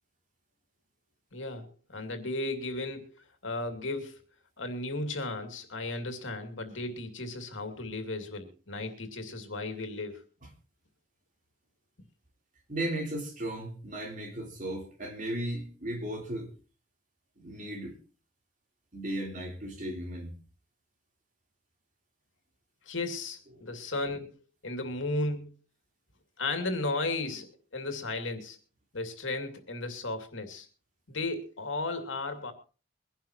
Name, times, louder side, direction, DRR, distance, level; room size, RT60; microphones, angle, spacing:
voice 1, 1.3-4.2 4.6-10.2 22.9-24.3 24.6-25.6 26.4-28.6 28.9-30.7 31.1-32.5, left 2 dB, 85° left, 2.5 m, -35 dB
voice 2, 12.7-16.5 17.4-18.0 18.9-20.3, right 1 dB, 40° right, 3.6 m, -35 dB
23.0 x 11.5 x 3.0 m
head